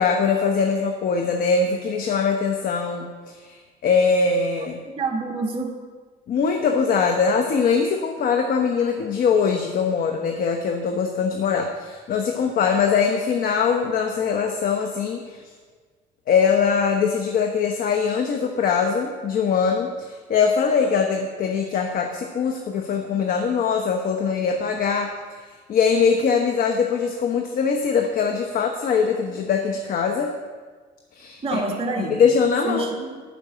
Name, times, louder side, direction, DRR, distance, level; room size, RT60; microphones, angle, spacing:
voice 1, 0.0-4.8 6.3-15.4 16.3-25.1 25.7-30.3 31.1-31.6 32.0-32.8, left 6 dB, 60° left, 4 dB, 1.0 m, -22 dB
voice 2, 4.9-5.8 23.1-23.2 31.4-32.2 32.6-33.2, right 3 dB, 35° right, 0 dB, 2.1 m, -27 dB
12.5 x 5.2 x 8.8 m, 1.5 s
cardioid pair, 110°, 17 cm